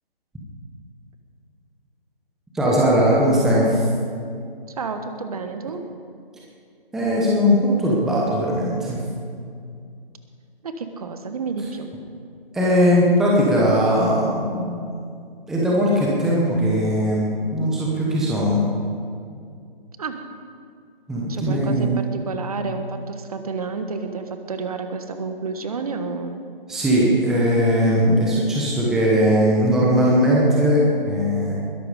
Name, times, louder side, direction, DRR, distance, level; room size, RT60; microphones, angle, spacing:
voice 1, 2.5-3.8 6.9-9.0 12.5-14.8 15.5-18.6 21.1-22.0 26.7-31.5, equal, ahead, -5 dB, 0.9 m, -19 dB
voice 2, 4.7-5.8 10.6-11.9 20.0-20.2 21.3-26.4, right 4 dB, 40° right, 7 dB, 1.3 m, -30 dB
21.0 x 12.0 x 5.0 m, 2.3 s
figure-of-eight pair, 160°, 29 cm